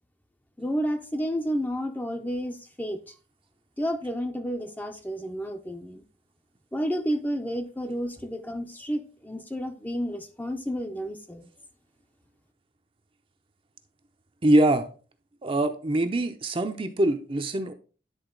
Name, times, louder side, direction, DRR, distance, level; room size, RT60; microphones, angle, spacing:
voice 1, 0.6-3.1 3.8-6.0 6.7-11.5, equal, 10° left, 0.7 m, -31 dB
voice 2, 14.4-14.9 15.4-17.7, right 1 dB, 30° right, 0.7 m, -23 dB
10.0 x 3.8 x 3.9 m
head